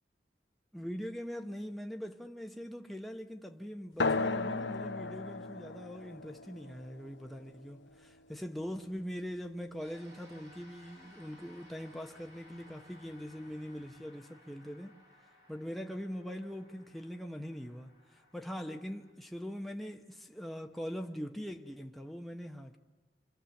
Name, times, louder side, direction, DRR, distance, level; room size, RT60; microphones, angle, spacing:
voice 1, 0.7-15.0 15.5-22.8, equal, ahead, 0.8 m, -42 dB
sound 1, 4.0-9.0, left 3 dB, 85° left, 0.8 m, -37 dB
sound 2, 9.8-19.1, left 1 dB, 80° right, 5.5 m, -60 dB
28.5 x 26.0 x 7.1 m
head